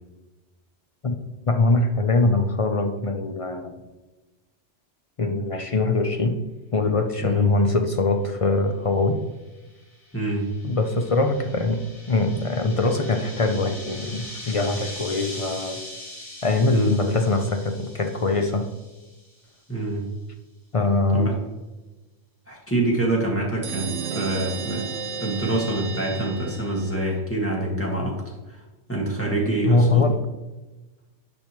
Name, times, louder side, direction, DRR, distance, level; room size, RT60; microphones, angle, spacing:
voice 1, 1.5-3.7 5.2-6.4 6.7-9.2 10.6-15.8 16.4-18.7 20.7-21.3 29.6-30.2, left 3 dB, 45° left, 5 dB, 0.4 m, -22 dB
sound 1, 9.6-19.4, left 1 dB, 80° left, 2.9 m, -41 dB
voice 2, 10.1-10.4 16.7-16.9 19.7-20.1 21.1-21.3 22.5-24.8 25.2-28.2 28.5-28.6 28.9-30.1, right 2 dB, 10° left, -3 dB, 1.8 m, -26 dB
sound 2, 23.6-27.2, right 5 dB, 70° right, 1.0 m, -33 dB
10.5 x 5.3 x 3.1 m, 1.1 s
omnidirectional pair, 1.2 m